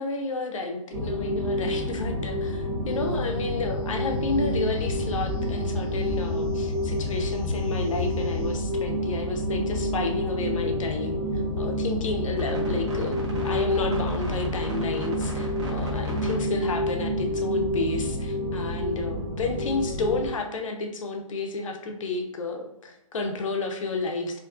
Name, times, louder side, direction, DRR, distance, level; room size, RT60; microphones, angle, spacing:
voice 1, 0.0-24.4, left 3 dB, 65° left, 4 dB, 0.5 m, -31 dB
sound 1, 0.9-20.3, left 1 dB, 55° right, 0.9 m, -28 dB
sound 2, 2.9-8.6, left 2 dB, 15° right, 0.4 m, -34 dB
2.5 x 2.3 x 2.4 m, 0.84 s
hypercardioid pair, 180°, 18 cm